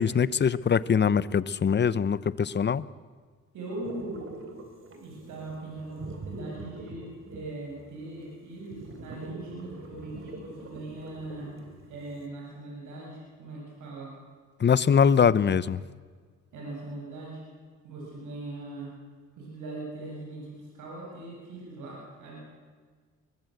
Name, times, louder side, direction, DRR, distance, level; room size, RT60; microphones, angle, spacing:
voice 1, 0.0-2.8 14.6-15.8, left 7 dB, 35° left, 17 dB, 0.8 m, -23 dB
voice 2, 3.5-4.3 4.9-14.1 16.5-17.4 17.8-18.9 19.3-22.5, right 2 dB, 80° right, -3 dB, 8.0 m, -40 dB
sound 1, 3.8-12.3, right 2 dB, 45° right, 3.6 m, -44 dB
23.5 x 18.5 x 8.0 m, 1.5 s
cardioid pair, 90°, 30 cm